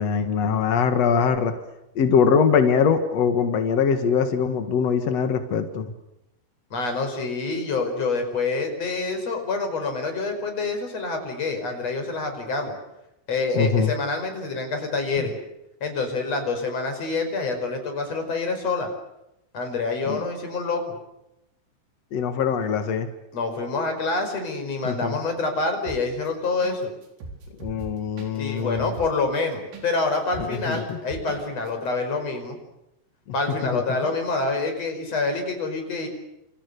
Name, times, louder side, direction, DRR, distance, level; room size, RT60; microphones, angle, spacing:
voice 1, 0.0-1.5 1.9-5.9 13.5-13.9 20.0-20.2 22.1-23.1 24.8-25.2 27.6-28.9 30.4-31.0 33.7-33.8, left 6 dB, 65° left, 7 dB, 1.6 m, -22 dB
voice 2, 6.7-12.8 13.3-15.4 15.8-18.9 19.5-21.0 23.3-26.9 28.3-32.6 33.3-36.1, left 3 dB, 30° left, 5 dB, 5.9 m, -27 dB
sound 1, 25.8-26.3 26.6-26.8 27.0-29.9 30.1-31.4 31.7-31.8, right 3 dB, 75° right, 6.7 m, -39 dB
29.0 x 28.5 x 6.8 m, 0.87 s
omnidirectional pair, 5.8 m